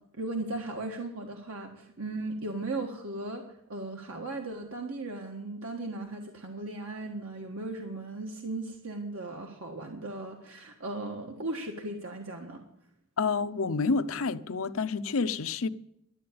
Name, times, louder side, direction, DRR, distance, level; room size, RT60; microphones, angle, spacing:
voice 1, 0.1-3.4 3.7-12.6, right 2 dB, 85° right, 1.5 m, -37 dB
voice 2, 13.2-15.7, left 4 dB, 75° left, 0.6 m, -29 dB
12.5 x 8.6 x 8.6 m
head